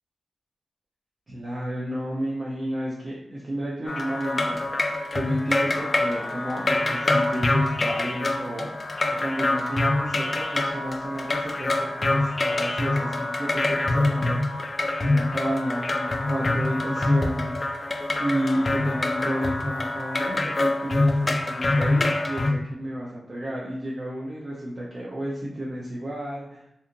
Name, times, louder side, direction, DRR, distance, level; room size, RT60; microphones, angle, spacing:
voice 1, 1.3-4.6 5.1-8.7 9.2-14.7 15.0-17.6 18.2-26.7, equal, 50° right, -5 dB, 0.6 m, -31 dB
sound 1, 3.9-22.5, left 2 dB, 40° left, 0.3 m, -25 dB
2.8 x 2.5 x 2.5 m, 0.79 s
cardioid pair, 60°, 0 cm